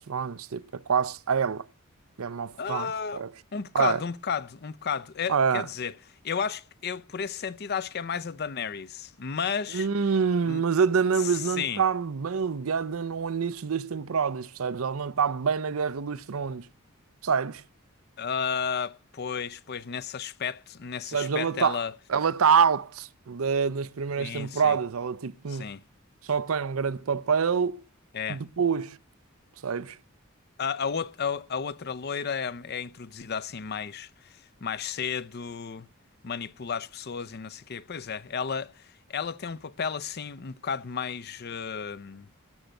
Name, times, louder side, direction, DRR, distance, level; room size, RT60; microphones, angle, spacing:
voice 1, 0.0-1.7 2.2-2.9 3.1-3.3 3.7-4.0 5.3-5.7 9.7-16.7 17.2-17.6 21.1-21.8 22.1-25.6 26.3-27.8 28.3-29.0 29.6-30.0, right 6 dB, 80° right, 0.6 m, -26 dB
voice 2, 2.6-3.2 3.5-5.9 6.2-9.9 10.4-10.6 11.3-11.8 18.2-21.9 24.2-24.8 25.5-25.8 28.1-28.4 30.6-35.9 36.2-42.3, left 6 dB, 50° left, 0.6 m, -33 dB
13.5 x 6.4 x 9.0 m
head